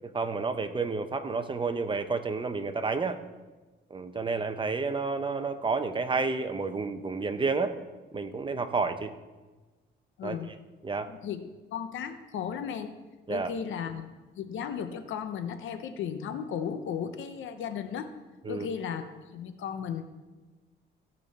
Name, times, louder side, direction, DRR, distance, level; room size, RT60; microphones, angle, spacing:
voice 1, 0.0-3.2 3.9-7.7 8.1-9.1 10.2-10.4 10.8-11.1 13.3-13.5 18.4-18.7, right 4 dB, 25° right, 8 dB, 0.9 m, -30 dB
voice 2, 10.2-10.5 11.1-12.9 13.3-14.1 14.4-18.1 18.5-20.0, left 7 dB, 75° left, 9 dB, 0.9 m, -35 dB
16.0 x 5.4 x 4.2 m, 1.2 s
cardioid pair, 90°, 20 cm